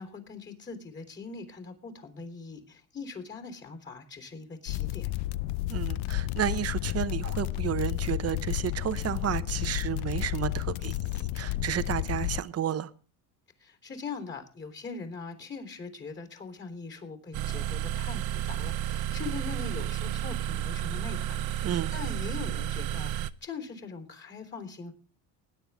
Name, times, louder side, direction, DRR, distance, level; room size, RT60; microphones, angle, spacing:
voice 1, 0.0-5.1 13.6-24.9, left 4 dB, 25° left, 3.5 m, -41 dB
sound 1, 4.7-12.4, left 16 dB, 70° left, 0.6 m, -31 dB
voice 2, 5.7-12.9 21.6-21.9, right 10 dB, 35° right, 0.9 m, -32 dB
sound 2, 17.3-23.3, right 11 dB, 60° right, 0.7 m, -32 dB
20.0 x 9.9 x 3.5 m
cardioid pair, 120°, 42 cm